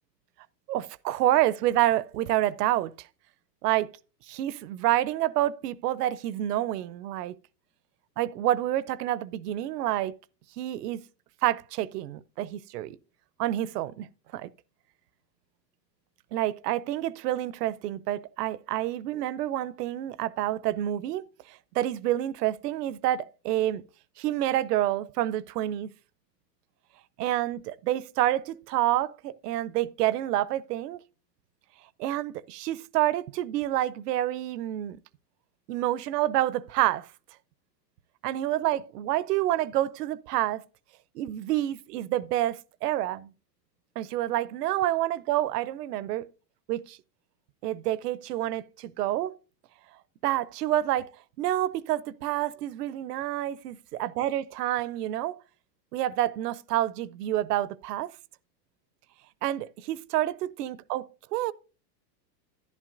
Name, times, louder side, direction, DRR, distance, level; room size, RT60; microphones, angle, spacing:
voice 1, 0.7-3.1 3.6-3.9 4.3-7.4 8.2-10.1 10.6-11.0 11.4-13.0 13.4-14.5 16.3-23.8 24.2-25.9 27.2-31.0 32.0-35.0 35.7-37.1 38.2-40.6 41.1-43.3 44.0-46.2 46.7-47.0 47.6-49.3 50.2-51.1 51.4-55.4 55.9-58.1 59.4-61.5, right 13 dB, 70° right, 0.6 m, -28 dB
11.0 x 11.0 x 2.5 m
supercardioid pair, 150°, 50 cm